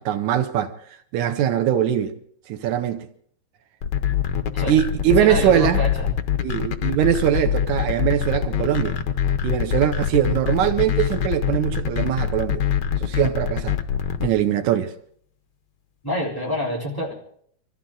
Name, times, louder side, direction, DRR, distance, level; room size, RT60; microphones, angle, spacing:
voice 1, 0.1-0.7 1.1-2.1 2.5-3.1 4.7-5.8 6.4-9.0 9.4-12.6 13.0-13.8 14.2-14.9, right 10 dB, 80° right, 2.3 m, -21 dB
sound 1, 3.8-14.3, left 9 dB, 75° left, 1.0 m, -24 dB
voice 2, 5.2-6.1 16.0-17.1, equal, 5° left, 3.7 m, -27 dB
25.0 x 14.5 x 3.9 m
omnidirectional pair, 3.3 m